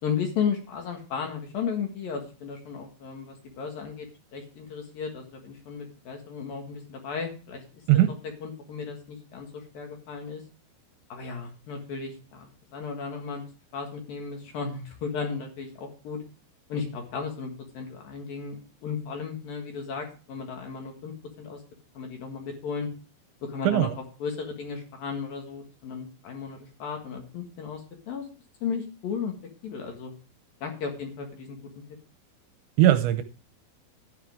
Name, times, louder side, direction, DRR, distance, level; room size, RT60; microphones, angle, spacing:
voice 1, 0.0-4.1 4.3-7.6 8.4-10.4 11.1-13.4 13.7-16.2 16.7-21.6 21.9-22.9 23.4-23.9 24.2-28.3 28.6-29.3 29.6-30.1 30.6-31.6, left 6 dB, 60° left, 3 dB, 2.9 m, -34 dB
voice 2, 32.8-33.2, right 13 dB, 80° right, 10 dB, 2.8 m, -19 dB
12.5 x 10.0 x 3.6 m, 0.35 s
omnidirectional pair, 5.6 m